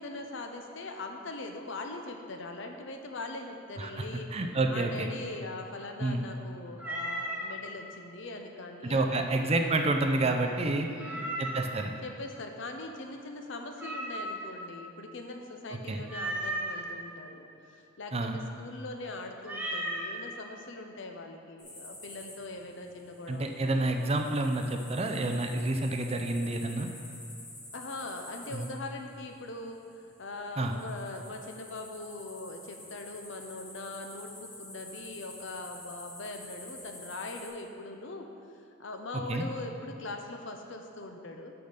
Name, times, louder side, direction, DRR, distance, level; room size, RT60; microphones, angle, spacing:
voice 1, 0.0-4.3 4.7-9.5 10.9-11.4 12.0-24.0 27.7-29.8 30.2-38.3 38.8-41.5, left 2 dB, 60° left, 4 dB, 0.7 m, -41 dB
voice 2, 4.3-5.1 6.0-6.2 8.8-10.9 11.4-11.9 15.7-16.0 18.1-18.4 23.3-26.9 28.5-28.7 30.6-30.8 39.3-39.4, right 2 dB, 30° right, 4 dB, 0.5 m, -29 dB
Meow, 6.8-7.5 11.0-11.8 13.8-14.6 16.1-16.8 19.4-20.1, right 1 dB, 10° right, 0.9 m, -35 dB
sound 1, 21.6-37.5, left 1 dB, 20° left, 1.8 m, -49 dB
7.0 x 5.7 x 6.6 m, 2.5 s
head